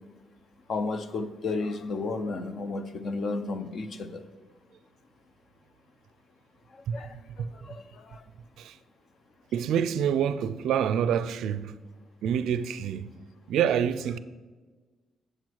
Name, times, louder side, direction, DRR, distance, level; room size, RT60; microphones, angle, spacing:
voice 1, 0.7-4.2 6.9-7.1 7.6-8.2, left 3 dB, 45° left, 0.6 m, -32 dB
voice 2, 9.5-11.7 12.2-13.1 13.5-14.2, right 8 dB, 85° right, 0.4 m, -27 dB
7.9 x 7.8 x 4.6 m
cardioid pair, 155°, 0 cm